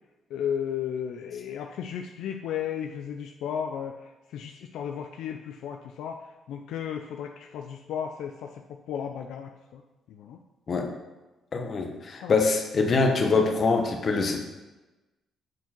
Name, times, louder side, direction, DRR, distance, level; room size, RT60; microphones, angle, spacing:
voice 1, 0.3-9.8 10.1-10.4 12.2-12.4, left 8 dB, 85° left, 4 dB, 0.4 m, -34 dB
voice 2, 11.5-14.4, left 4 dB, 45° left, 3 dB, 1.2 m, -24 dB
8.1 x 4.6 x 4.5 m, 1.1 s
cardioid pair, 90°, 0 cm